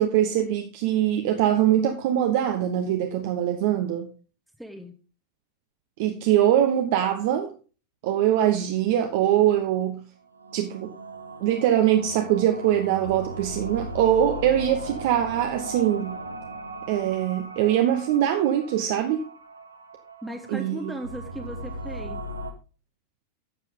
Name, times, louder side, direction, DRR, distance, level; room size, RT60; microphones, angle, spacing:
voice 1, 0.0-4.1 6.0-7.5 8.0-10.0 10.5-10.9 11.4-16.2 16.9-19.3 20.5-20.9, right 11 dB, 50° right, 1.0 m, -23 dB
voice 2, 4.6-4.9 20.2-22.2, right 1 dB, ahead, 1.1 m, -37 dB
sound 1, 10.3-22.5, right 1 dB, 80° right, 0.9 m, -38 dB
11.5 x 7.5 x 3.7 m
figure-of-eight pair, 90°, 0 cm